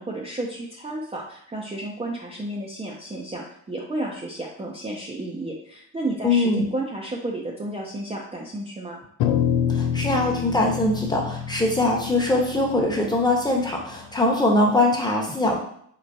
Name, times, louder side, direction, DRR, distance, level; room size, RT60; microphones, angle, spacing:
voice 1, 0.0-9.0, right 1 dB, 15° right, -3 dB, 0.6 m, -32 dB
voice 2, 6.2-6.7 9.7-15.6, left 2 dB, 10° left, 0 dB, 0.9 m, -22 dB
sound 1, 9.2-13.7, left 9 dB, 85° left, 0.5 m, -27 dB
4.7 x 2.4 x 2.6 m, 0.67 s
supercardioid pair, 70°, 38 cm